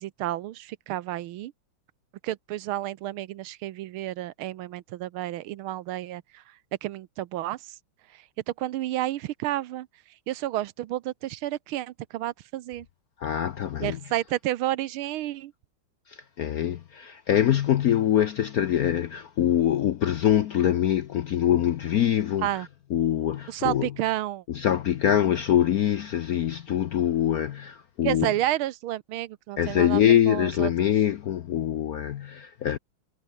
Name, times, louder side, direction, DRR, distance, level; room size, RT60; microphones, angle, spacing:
voice 1, 0.0-1.5 2.2-6.4 6.8-7.7 8.6-9.9 10.3-12.9 13.8-15.5 22.4-22.7 23.5-24.4 28.0-30.7, right 14 dB, 85° right, 1.6 m, -30 dB
voice 2, 13.2-14.0 16.1-23.9 24.5-28.3 29.6-32.8, left 10 dB, 70° left, 0.9 m, -24 dB
omnidirectional pair, 2.3 m